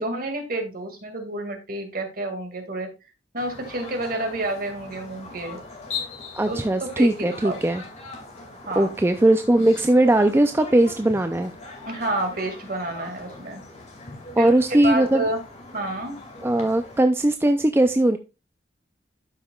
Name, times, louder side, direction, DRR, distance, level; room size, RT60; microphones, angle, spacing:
voice 1, 0.0-2.9 3.3-5.6 6.5-7.6 8.7-8.9 11.9-13.6 14.4-14.5 14.8-15.4 15.7-16.2, right 2 dB, 50° right, 4 dB, 2.1 m, -29 dB
sound 1, 3.4-17.0, left 3 dB, 35° left, 2.2 m, -40 dB
voice 2, 6.3-7.8 8.8-11.5 14.4-15.2 16.4-18.2, right 1 dB, 15° right, 7 dB, 0.4 m, -19 dB
12.0 x 5.7 x 2.3 m, 0.27 s
head